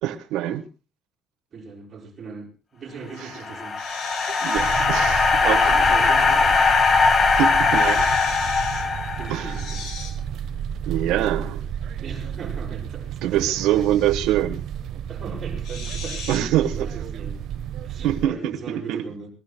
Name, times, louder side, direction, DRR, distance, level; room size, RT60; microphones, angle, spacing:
voice 1, 0.0-0.6 3.2-3.4 4.3-5.7 7.3-8.0 9.3-9.6 10.9-11.6 13.2-14.6 16.3-16.9 18.0-19.0, right 12 dB, 90° right, 1.1 m, -24 dB
voice 2, 1.5-3.8 5.4-6.8 9.2-9.9 12.0-13.6 15.1-17.4 17.8-19.3, right 4 dB, 30° right, 7.3 m, -38 dB
sound 1, 3.2-9.6, left 4 dB, 30° left, 1.6 m, -20 dB
sound 2, 3.8-4.9 5.7-6.0 7.7-8.9 9.5-10.1 13.6-14.3 15.6-16.4, left 4 dB, 65° left, 7.6 m, -38 dB
sound 3, 4.5-18.3, right 8 dB, 55° right, 1.0 m, -32 dB
25.0 x 20.0 x 2.2 m
cardioid pair, 170°, 0 cm